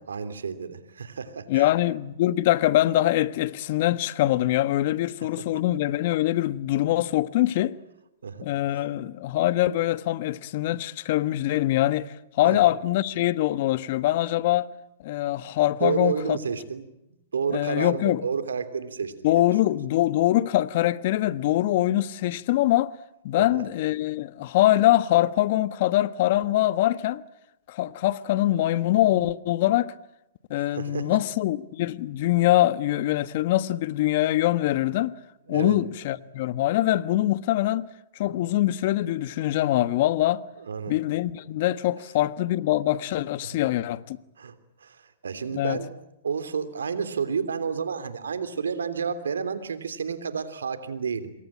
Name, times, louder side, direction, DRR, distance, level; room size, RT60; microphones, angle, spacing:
voice 1, 0.0-1.7 5.4-5.5 8.2-8.5 12.4-12.6 15.8-16.8 17.3-19.5 23.4-23.5 30.6-31.1 35.5-35.8 40.6-40.9 43.5-43.6 44.4-45.9 46.2-51.3, right 6 dB, 85° right, 3.2 m, -30 dB
voice 2, 1.5-7.8 8.4-14.7 15.0-16.4 17.5-18.2 19.2-22.9 23.2-27.2 27.7-29.9 30.5-35.2 35.5-37.9 38.2-40.4 40.9-44.2 45.5-45.8, left 15 dB, 55° left, 1.3 m, -23 dB
27.0 x 22.5 x 8.8 m
hypercardioid pair, 125°, 0 cm